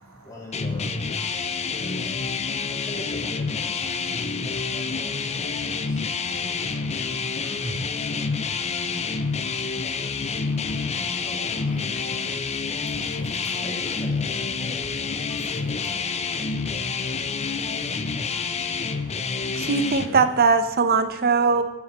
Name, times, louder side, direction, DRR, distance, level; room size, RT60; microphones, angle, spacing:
voice 1, 0.2-0.9 1.2-1.5 1.8-2.2 2.7-4.0 4.7-5.4 5.7-6.1 7.3-7.9 11.1-12.0 13.5-14.8 15.4-16.5, left 1 dB, 15° left, -3 dB, 2.8 m, -42 dB
sound 1, 0.5-20.1, left 5 dB, 30° left, 0.6 m, -28 dB
voice 2, 5.4-7.3 7.5-7.8 10.6-11.4 12.0-12.1 12.8-13.3 16.6-17.3 20.0-20.2, right 2 dB, 70° right, 0 dB, 3.2 m, -42 dB
sound 2, 10.7-11.0 12.9-13.2 13.5-13.6 14.8-15.1 16.7-17.0, equal, 80° left, 2.1 m, -44 dB
voice 3, 19.6-21.6, right 5 dB, 45° right, 11 dB, 0.8 m, -20 dB
10.0 x 6.0 x 8.1 m, 1.1 s
head